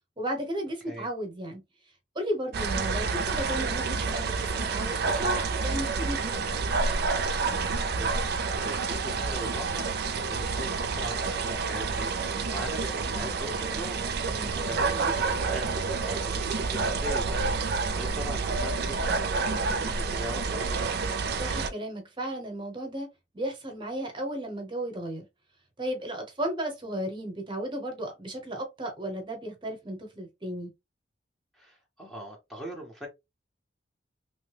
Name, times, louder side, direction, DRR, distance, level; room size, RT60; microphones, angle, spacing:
voice 1, 0.2-1.6 2.1-6.4 14.3-14.7 21.4-23.1 23.3-25.2 25.8-30.7, right 1 dB, 25° right, 0.9 m, -34 dB
sound 1, 2.5-21.7, right 4 dB, 60° right, 0.4 m, -29 dB
voice 2, 7.5-14.3 14.6-20.9 31.5-33.1, right 1 dB, ahead, 0.7 m, -40 dB
3.0 x 2.1 x 3.3 m
head